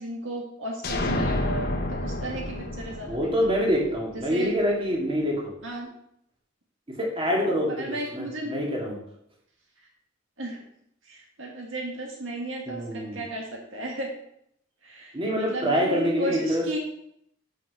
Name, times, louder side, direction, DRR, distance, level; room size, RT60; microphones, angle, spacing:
voice 1, 0.0-3.2 3.5-3.6 4.3-4.5 5.6-5.9 7.8-8.5 10.4-10.6 11.1-14.1 14.8-16.8, right 1 dB, 65° right, 0 dB, 1.8 m, -34 dB
sound 1, 0.8-4.5, left 1 dB, 50° left, 1.0 m, -30 dB
voice 2, 3.1-5.5 6.9-9.0 12.7-13.2 15.1-16.6, equal, 25° right, -2 dB, 2.2 m, -26 dB
6.8 x 6.0 x 6.4 m, 0.73 s
head